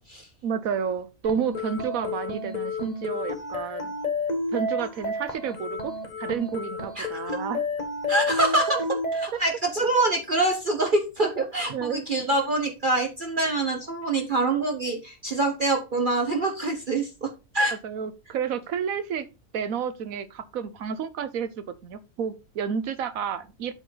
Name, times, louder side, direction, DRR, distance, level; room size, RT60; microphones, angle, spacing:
voice 1, 0.4-3.9 4.5-5.9 6.2-7.6 11.7-12.0 17.8-19.3 19.5-21.5 21.8-23.7, right 7 dB, 85° right, 1.3 m, -30 dB
sound 1, 1.2-9.3, left 2 dB, 30° left, 1.4 m, -30 dB
voice 2, 7.0-7.4 8.1-8.8 9.1-17.7, right 2 dB, 40° right, 1.1 m, -25 dB
8.3 x 5.9 x 3.9 m
omnidirectional pair, 1.4 m